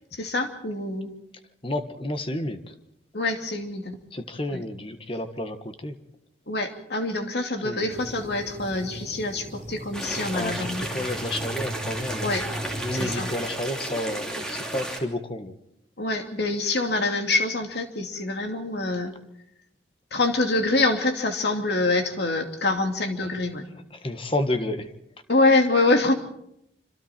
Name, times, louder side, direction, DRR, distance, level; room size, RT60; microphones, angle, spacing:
voice 1, 0.1-1.1 3.1-4.0 4.5-4.6 6.5-10.9 12.2-12.4 12.9-13.3 16.0-19.1 20.1-23.6 25.3-26.1, left 2 dB, 60° left, 4 dB, 2.7 m, -25 dB
voice 2, 1.6-2.7 4.1-5.9 7.6-8.0 10.3-12.3 12.8-15.5 24.0-24.9, left 1 dB, 30° left, 9 dB, 1.4 m, -30 dB
sound 1, 7.9-13.3, right 1 dB, 40° right, 3.3 m, -37 dB
Fuente de agua plaza de la Catedral de Santa María de Huesca, 9.9-15.0, right 1 dB, 5° left, 3.0 m, -33 dB
27.0 x 26.0 x 4.5 m, 0.77 s
head